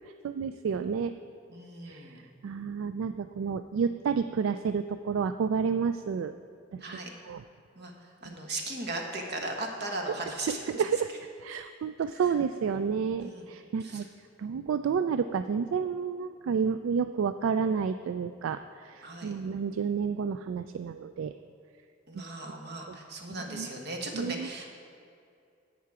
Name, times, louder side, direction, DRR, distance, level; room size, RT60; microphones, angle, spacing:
voice 1, 0.2-1.1 1.9-2.0 2.4-6.3 6.7-7.0 7.3-7.4 10.7-11.1 11.4-14.1 14.4-21.3 23.5-23.7 24.1-24.5, right 6 dB, 75° right, 10 dB, 0.3 m, -30 dB
voice 2, 1.5-2.3 6.8-7.1 7.8-10.8 12.2-12.3 13.2-13.5 13.8-14.0 19.0-19.3 22.1-24.7, right 2 dB, 55° right, 2 dB, 1.3 m, -37 dB
10.5 x 8.3 x 4.8 m, 2.4 s
head